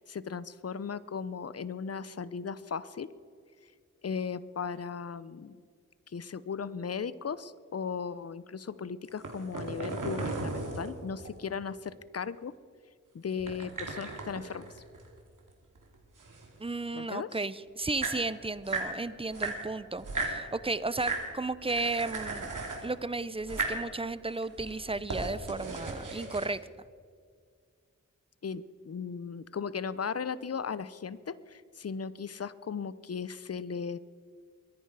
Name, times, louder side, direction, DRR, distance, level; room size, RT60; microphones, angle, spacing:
voice 1, 0.0-3.1 4.0-5.6 6.1-12.5 13.1-14.8 16.9-17.3 28.4-34.0, left 6 dB, 50° left, 17 dB, 0.7 m, -37 dB
sound 1, 9.1-11.6 13.4-15.5 15.7-17.0 17.6-17.7 17.8-18.9 19.3-20.4 20.9-21.3 21.6-22.9 23.4-23.8 24.3-26.5, right 3 dB, 75° right, 2.8 m, -36 dB
voice 2, 16.6-22.5 22.8-26.6, right 3 dB, 20° right, 17 dB, 0.6 m, -34 dB
23.0 x 10.5 x 4.8 m, 2.1 s
wide cardioid pair, 65°, 31 cm